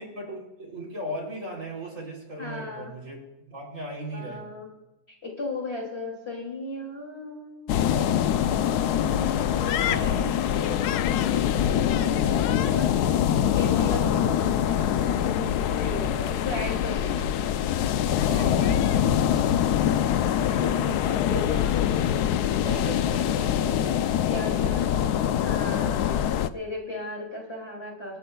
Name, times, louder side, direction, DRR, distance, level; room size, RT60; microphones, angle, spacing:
voice 1, 0.0-4.5 9.8-10.3 12.2-13.5 13.8-14.5 14.9-15.0 18.2-19.4 20.5-23.9 24.2-25.1 25.7-26.0, right 1 dB, 40° right, -1 dB, 3.7 m, -38 dB
voice 2, 2.4-2.9 4.1-4.7 5.1-8.1 8.7-12.9 13.4-17.3 20.1-21.3 22.9-23.1 24.3-24.8 25.4-26.2 26.5-28.2, left 2 dB, 35° left, -1 dB, 2.9 m, -36 dB
sound 1, 7.7-26.5, left 10 dB, 70° left, 1.0 m, -24 dB
26.5 x 12.5 x 2.3 m, 1.0 s
omnidirectional pair, 2.0 m